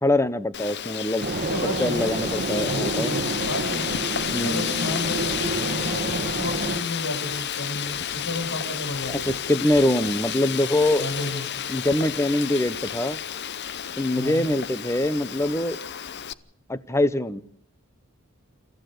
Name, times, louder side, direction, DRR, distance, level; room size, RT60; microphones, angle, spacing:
voice 1, 0.0-1.3 1.8-3.1 4.3-4.7 9.1-11.1 11.7-13.2 14.0-15.8 16.7-17.4, left 1 dB, 15° left, 14 dB, 0.9 m, -24 dB
Wind, 0.5-16.3, left 9 dB, 50° left, 0.7 m, -31 dB
sound 1, 1.2-6.8, right 2 dB, 40° right, 1.8 m, -29 dB
voice 2, 1.3-2.1 2.6-3.9 4.4-8.0 8.2-9.4 11.0-11.4 14.1-14.4, left 2 dB, 80° left, 4 dB, 7.7 m, -32 dB
28.5 x 14.5 x 6.7 m, 0.68 s
head